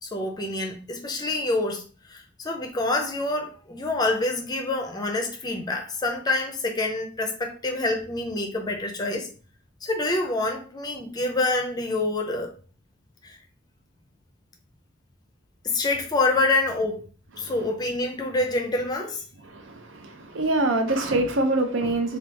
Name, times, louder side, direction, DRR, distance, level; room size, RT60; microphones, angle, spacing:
voice 1, 0.0-1.8 2.1-9.3 9.8-12.5 13.2-13.4 15.6-17.0 17.4-19.2, left 2 dB, 20° left, 0.5 m, -26 dB
voice 2, 19.5-22.2, right 2 dB, 65° right, 0.5 m, -25 dB
2.8 x 2.3 x 3.3 m
head